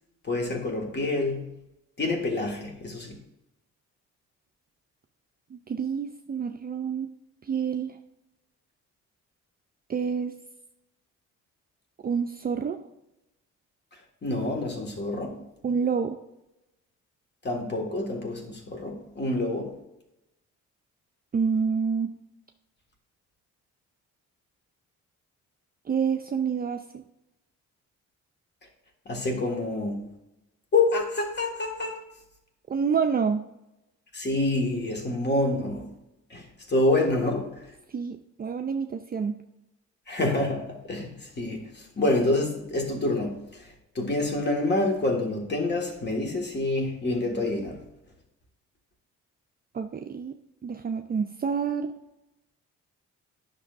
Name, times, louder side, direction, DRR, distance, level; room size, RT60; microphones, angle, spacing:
voice 1, 0.2-1.5 2.0-3.2 14.2-15.4 17.4-19.8 29.1-30.0 30.7-32.0 34.1-35.9 36.3-37.7 40.1-47.8, left 2 dB, 35° left, 1.9 m, -27 dB
voice 2, 5.5-7.1 7.4-8.0 9.9-10.3 12.0-12.8 15.6-16.2 21.3-22.1 25.9-27.0 32.7-33.4 37.9-39.4 49.7-50.3 50.6-51.9, right 6 dB, 30° right, 0.5 m, -28 dB
10.5 x 6.1 x 2.6 m
cardioid pair, 90°, 30 cm